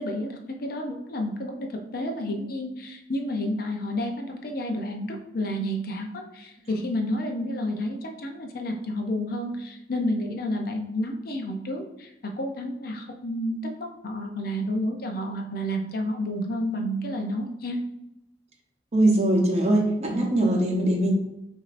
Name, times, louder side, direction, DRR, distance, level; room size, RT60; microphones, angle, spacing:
voice 1, 0.0-17.8, left 1 dB, 55° left, 3 dB, 0.6 m, -30 dB
voice 2, 18.9-21.1, right 1 dB, 40° right, 1 dB, 0.8 m, -22 dB
6.1 x 2.6 x 2.5 m, 0.88 s
head